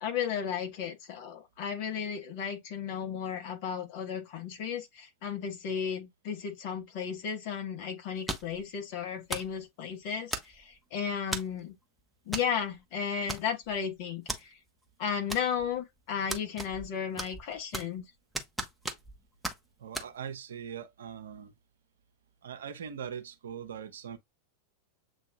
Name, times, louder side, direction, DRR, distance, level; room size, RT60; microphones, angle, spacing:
voice 1, 0.0-11.7 12.3-14.6 15.0-18.1, left 7 dB, 45° left, 1.4 m, -34 dB
sound 1, 8.3-8.6 9.3-9.6 10.3-10.7 11.3-11.6 12.3-12.5 12.8-12.9 13.3-13.8 14.3-14.4 15.3-15.8 16.3-16.9 17.2-18.0 18.3-19.2 19.4-19.6 19.9-20.1, right 1 dB, 5° right, 0.8 m, -36 dB
voice 2, 19.8-21.5 22.4-24.2, right 8 dB, 65° right, 0.7 m, -41 dB
7.7 x 2.7 x 2.3 m
figure-of-eight pair, 90°, 0 cm